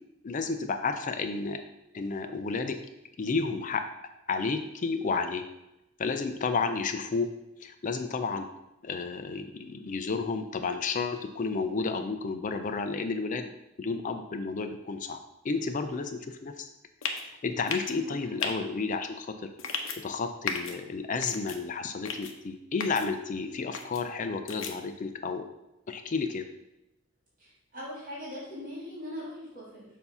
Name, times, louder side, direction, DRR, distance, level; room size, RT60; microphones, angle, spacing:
voice 1, 0.2-1.6 1.9-2.8 3.2-3.8 4.3-5.4 6.0-7.3 7.6-8.5 8.8-13.5 13.8-15.2 15.4-16.7 17.2-19.3 20.0-25.5 25.9-26.5, left 4 dB, 40° left, 8 dB, 0.4 m, -31 dB
sound 1, 17.0-17.2 17.7-17.9 18.4-18.5 19.6-20.0 20.5-20.7 21.2-21.6 22.0-22.3 22.8-23.0 23.7-24.0 24.5-24.7, left 5 dB, 85° left, 0.7 m, -34 dB
voice 2, 27.4-29.9, left 1 dB, 45° right, -6 dB, 2.2 m, -41 dB
6.9 x 2.7 x 5.4 m, 0.93 s
head